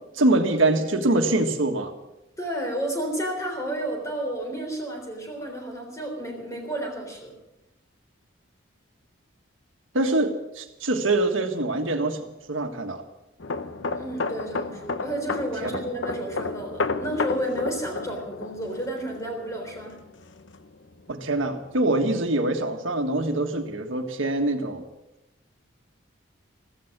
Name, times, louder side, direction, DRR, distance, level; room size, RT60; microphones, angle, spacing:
voice 1, 0.1-1.9 9.9-13.0 15.6-15.8 21.1-24.8, right 2 dB, 85° right, 5 dB, 1.6 m, -24 dB
voice 2, 2.4-7.3 14.0-20.0, right 1 dB, 15° left, 2 dB, 3.6 m, -31 dB
sound 1, 13.4-20.9 21.2-21.5, left 3 dB, 70° left, 0.9 m, -32 dB
14.5 x 14.5 x 6.0 m, 0.92 s
head